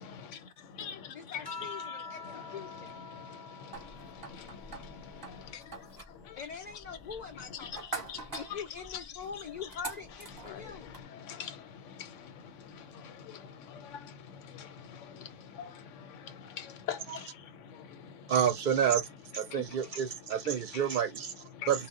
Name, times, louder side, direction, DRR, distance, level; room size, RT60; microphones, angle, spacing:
voice 1, 0.0-1.5 1.9-6.4 7.6-8.6 10.4-18.4 18.8-18.9 19.5-19.8 20.3-21.0 21.5-21.7, left 8 dB, 85° left, 0.9 m, -45 dB
voice 2, 1.1-3.0 6.4-10.9, left 6 dB, 65° left, 0.4 m, -44 dB
sound 1, 1.4-6.2 6.7-8.4 9.6-10.1, left 4 dB, 25° left, 0.6 m, -48 dB
sound 2, 3.7-11.0, right 4 dB, 20° right, 0.7 m, -46 dB
voice 3, 18.3-19.1 19.3-21.3 21.7-21.9, right 8 dB, 55° right, 0.6 m, -29 dB
2.1 x 2.1 x 3.5 m
omnidirectional pair, 1.2 m